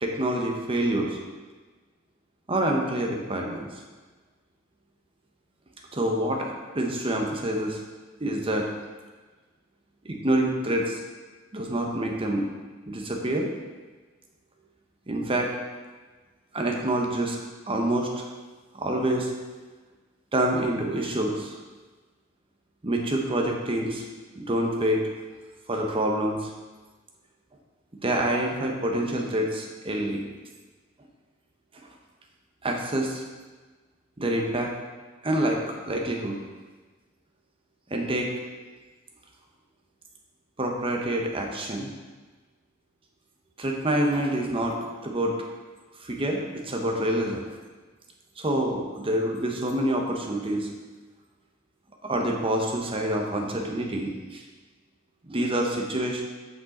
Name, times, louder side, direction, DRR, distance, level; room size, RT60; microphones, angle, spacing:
voice 1, 0.0-1.2 2.5-3.7 5.9-7.8 8.2-8.7 10.0-11.0 11.5-12.5 12.9-13.5 15.1-15.5 16.5-17.4 17.7-18.2 18.7-19.3 20.3-21.6 22.8-24.0 24.4-25.0 25.7-26.5 28.0-30.2 32.6-33.2 34.2-34.7 35.2-36.4 37.9-38.3 40.6-41.9 43.6-44.8 45.0-45.4 46.0-47.4 48.4-50.7 52.0-54.4 55.2-56.2, right 1 dB, 25° right, 1 dB, 0.9 m, -27 dB
6.1 x 5.4 x 4.2 m, 1.3 s
head